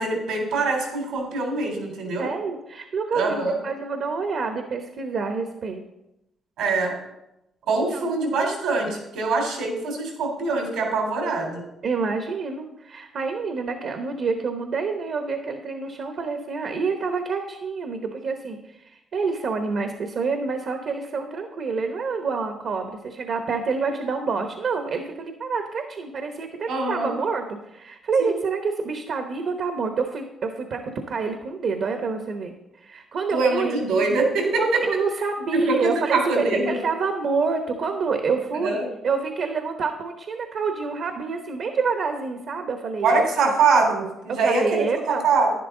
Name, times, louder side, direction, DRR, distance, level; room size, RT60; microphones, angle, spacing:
voice 1, 0.0-2.3 3.1-3.6 6.6-7.0 7.7-11.6 26.7-27.1 28.2-28.4 33.3-34.6 35.5-36.8 38.5-38.8 43.0-45.5, right 3 dB, 85° right, 1 dB, 3.6 m, -23 dB
voice 2, 2.2-5.8 7.7-8.1 11.8-33.8 34.6-38.8 39.0-43.5 44.3-45.3, right 4 dB, 60° right, 6 dB, 1.0 m, -27 dB
11.0 x 10.5 x 3.8 m, 0.89 s
cardioid pair, 90°, 0 cm